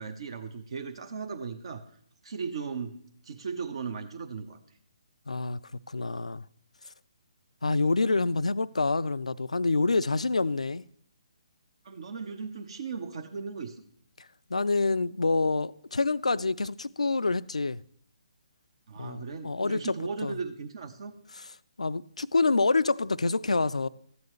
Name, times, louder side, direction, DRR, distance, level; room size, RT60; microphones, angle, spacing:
voice 1, 0.0-1.8 2.2-3.0 3.2-4.6 11.8-13.8 18.9-21.1, right 5 dB, 55° right, 0.8 m, -37 dB
voice 2, 5.3-5.6 5.9-6.4 7.6-10.8 14.5-17.8 19.0-19.9 20.2-20.4 21.8-23.9, left 3 dB, 85° left, 0.3 m, -27 dB
14.0 x 9.5 x 3.1 m
figure-of-eight pair, 140°, 3 cm